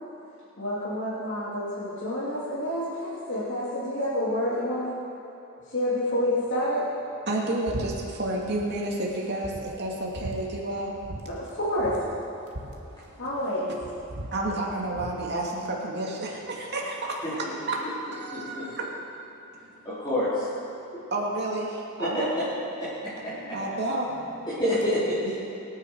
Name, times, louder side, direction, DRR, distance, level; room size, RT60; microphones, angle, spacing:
voice 1, 0.6-4.9 5.7-6.8 11.3-11.9 13.2-13.7, left 1 dB, 55° left, -10 dB, 3.2 m, -28 dB
voice 2, 7.3-10.9 13.7-13.8 14.1-17.8 18.1-18.8 20.7-22.4 23.3-24.5, right 2 dB, 50° right, -2 dB, 2.4 m, -31 dB
sound 1, 7.7-7.9 8.2-8.7 9.1-9.2 9.4-10.4 11.0-11.2 11.5-11.6 11.8-13.5 13.8-15.2, right 1 dB, 80° right, 1.8 m, -38 dB
voice 3, 18.3-18.7 19.8-20.5 22.0-22.2 22.8-22.9 23.2-23.6 24.5-25.2, left 1 dB, 20° left, -13 dB, 4.4 m, -27 dB
24.5 x 9.7 x 4.8 m, 2.9 s
head